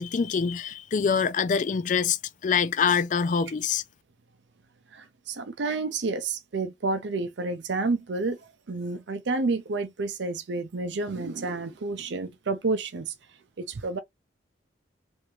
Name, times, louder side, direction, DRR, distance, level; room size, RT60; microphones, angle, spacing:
voice 1, 0.0-3.8, left 6 dB, 40° left, 0.3 m, -25 dB
voice 2, 4.9-13.1 13.6-14.0, right 3 dB, 70° right, 0.5 m, -30 dB
3.4 x 2.6 x 3.0 m
head